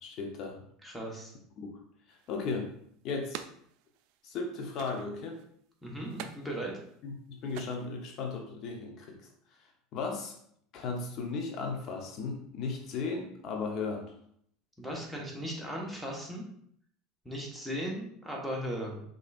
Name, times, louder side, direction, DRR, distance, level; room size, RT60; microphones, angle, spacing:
voice 1, 0.0-0.6 1.6-1.7 2.1-2.7 3.0-3.4 4.2-5.4 7.0-9.3 9.9-10.3 10.7-14.1, left 4 dB, 50° left, 2 dB, 0.8 m, -36 dB
voice 2, 0.8-1.3 5.8-6.7 14.8-16.4 17.2-19.0, equal, ahead, -2 dB, 1.2 m, -37 dB
sound 1, 2.1-4.4 4.7-5.5 6.0-8.4, right 10 dB, 65° right, 0.4 m, -47 dB
5.3 x 3.9 x 2.4 m, 0.66 s
supercardioid pair, 125°, 0 cm